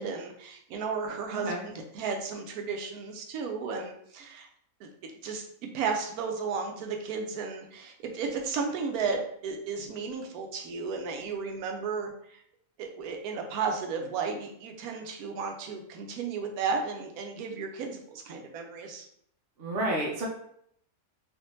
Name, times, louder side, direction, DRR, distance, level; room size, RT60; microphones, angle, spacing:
voice 1, 0.0-4.5 4.8-5.4 5.7-12.4 12.8-19.0, right 5 dB, 90° right, 3 dB, 1.1 m, -34 dB
voice 2, 19.6-20.3, right 1 dB, 60° right, -2 dB, 0.6 m, -30 dB
3.6 x 2.6 x 2.6 m, 0.68 s
omnidirectional pair, 1.5 m